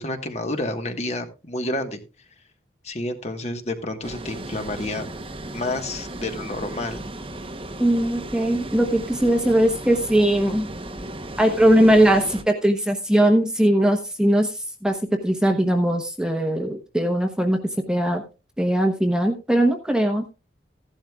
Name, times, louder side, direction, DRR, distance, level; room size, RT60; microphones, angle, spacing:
voice 1, 0.0-2.0 2.8-5.1 5.5-7.0, left 1 dB, 35° left, 6 dB, 1.4 m, -29 dB
Water, 4.0-12.4, right 1 dB, 30° right, 0.9 m, -35 dB
voice 2, 7.8-10.7 11.4-15.0 15.2-17.6 17.9-18.2 18.6-20.3, right 1 dB, 5° right, 4 dB, 1.0 m, -20 dB
15.5 x 11.5 x 2.4 m, 0.30 s
head